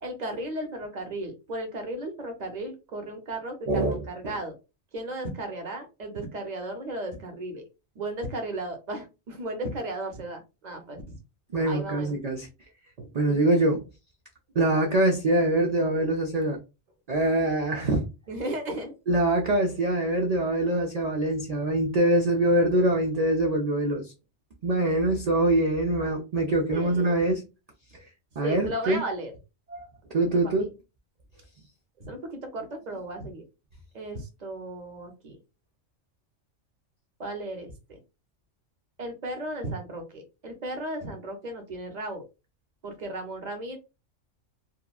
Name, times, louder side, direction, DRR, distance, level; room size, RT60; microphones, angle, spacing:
voice 1, 0.0-4.5 4.9-7.6 8.0-11.2 11.6-12.2 13.3-13.5 18.3-18.9 26.7-27.2 28.4-29.3 30.3-30.6 32.0-33.4 33.9-35.4 37.2-37.7 39.0-42.2 42.8-43.8, right 1 dB, 45° right, 5 dB, 0.7 m, -35 dB
voice 2, 3.7-4.3 11.5-12.5 13.0-13.8 14.6-16.6 17.1-18.0 19.1-24.1 24.6-27.4 28.4-29.0 29.7-29.9 30.1-30.7, right 1 dB, 75° right, 2 dB, 0.3 m, -24 dB
2.9 x 2.3 x 2.3 m, 0.27 s
omnidirectional pair, 1.3 m